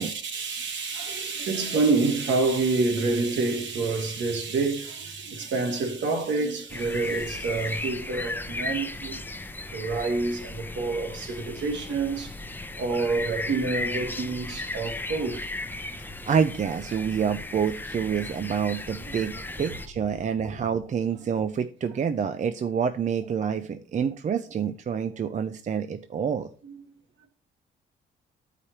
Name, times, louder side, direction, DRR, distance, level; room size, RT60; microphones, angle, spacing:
voice 1, 0.0-9.2 9.7-12.4 12.7-15.4 26.6-26.8, right 3 dB, 65° right, 1.7 m, -27 dB
sound 1, 6.7-19.9, left 2 dB, 10° left, 0.6 m, -36 dB
voice 2, 16.0-26.5, right 7 dB, 40° right, 0.5 m, -27 dB
12.0 x 5.0 x 2.9 m
cardioid pair, 90°, 20 cm